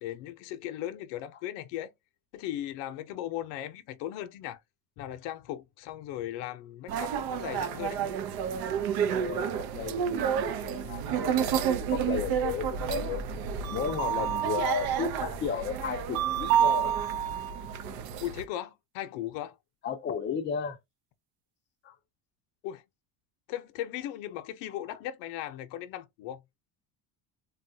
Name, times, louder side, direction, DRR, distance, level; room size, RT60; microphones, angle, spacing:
voice 1, 0.0-1.9 2.3-4.6 5.0-8.0 18.2-19.6 22.6-22.8 23.5-26.4, left 12 dB, 70° left, 0.7 m, -37 dB
sound 1, 6.9-18.4, right 8 dB, 55° right, 0.6 m, -29 dB
voice 2, 9.2-10.2 10.4-13.2 13.7-17.3 19.8-20.8 21.8-21.9, left 7 dB, 25° left, 0.5 m, -34 dB
3.5 x 2.3 x 2.6 m
cardioid pair, 135°, 44 cm